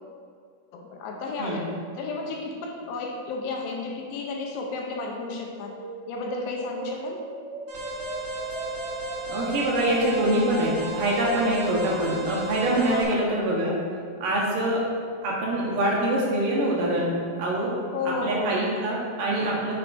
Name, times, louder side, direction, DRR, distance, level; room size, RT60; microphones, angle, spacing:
voice 1, 0.7-5.7 6.1-7.2 12.9-13.3 17.9-18.6, left 3 dB, 75° left, 1 dB, 2.4 m, -32 dB
sound 1, 5.5-12.5, right 3 dB, 85° right, 2.6 m, -39 dB
Alarm, 7.7-13.0, right 1 dB, 50° right, 2.2 m, -35 dB
voice 2, 9.3-13.7 14.2-14.8 15.2-17.7 18.2-19.7, right 1 dB, 70° right, -5 dB, 2.6 m, -24 dB
9.5 x 7.0 x 2.6 m, 2.2 s
omnidirectional pair, 4.4 m